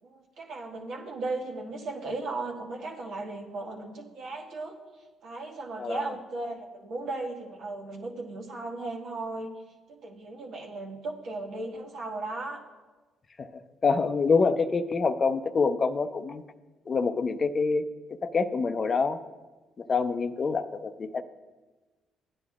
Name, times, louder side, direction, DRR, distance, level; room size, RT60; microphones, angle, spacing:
voice 1, 0.0-4.8 5.2-9.5 9.9-12.6, right 2 dB, 70° right, 0 dB, 1.4 m, -36 dB
voice 2, 13.8-16.4 16.9-17.8 18.2-19.2 19.8-21.2, left 4 dB, 45° left, 9 dB, 0.5 m, -26 dB
14.5 x 9.7 x 2.4 m, 1.2 s
supercardioid pair, 65°, 0 cm